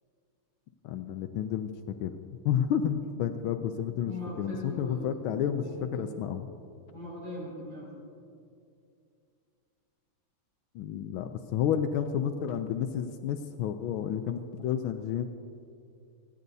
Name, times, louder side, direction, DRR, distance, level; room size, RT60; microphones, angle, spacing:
voice 1, 0.8-2.1 2.4-6.5 10.7-15.3, left 9 dB, 85° left, 7 dB, 1.4 m, -31 dB
voice 2, 4.0-5.0 5.6-6.2 6.9-7.9, left 1 dB, 65° right, -5 dB, 4.6 m, -40 dB
28.5 x 10.5 x 2.7 m, 2.5 s
omnidirectional pair, 2.2 m